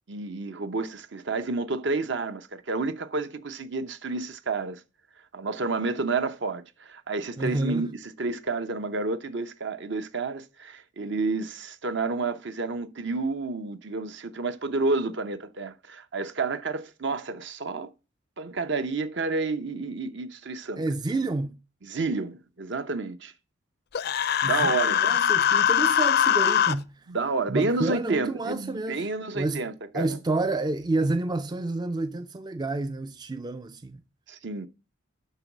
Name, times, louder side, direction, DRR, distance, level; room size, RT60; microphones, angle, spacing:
voice 1, 0.1-4.8 5.3-17.9 18.4-20.8 21.8-23.3 24.4-25.2 27.1-30.1 34.3-34.7, right 3 dB, 60° right, 0.8 m, -30 dB
voice 2, 7.4-7.9 20.8-21.6 24.4-27.1 27.5-29.7 29.9-34.0, right 2 dB, 20° right, 0.3 m, -29 dB
Human voice, 23.9-26.7, left 9 dB, 50° left, 0.4 m, -22 dB
11.5 x 3.9 x 6.0 m
head